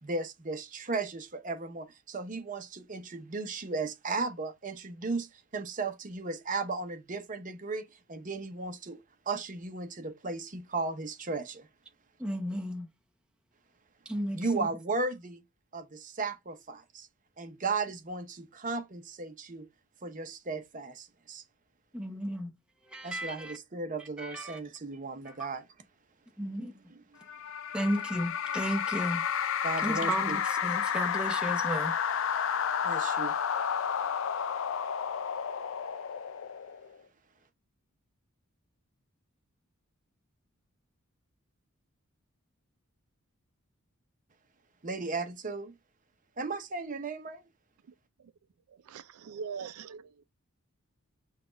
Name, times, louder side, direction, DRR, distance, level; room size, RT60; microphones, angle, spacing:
voice 1, 0.0-9.0 9.3-11.7 14.3-15.4 15.7-17.1 17.4-19.7 20.0-21.4 23.0-25.6 26.9-27.0 29.6-30.4 32.8-33.4 44.8-45.8 46.4-47.4, right 3 dB, 35° right, 0.7 m, -35 dB
voice 2, 12.2-12.9 14.1-14.7 21.9-22.5 22.9-23.6 24.2-24.6 25.3-25.5 26.4-26.9 27.7-29.3 29.8-32.0 32.3-32.4, equal, 5° right, 0.8 m, -34 dB
sound 1, 27.3-37.0, left 8 dB, 60° left, 0.4 m, -31 dB
voice 3, 48.7-50.2, right 6 dB, 80° right, 0.4 m, -42 dB
5.8 x 2.3 x 3.9 m
head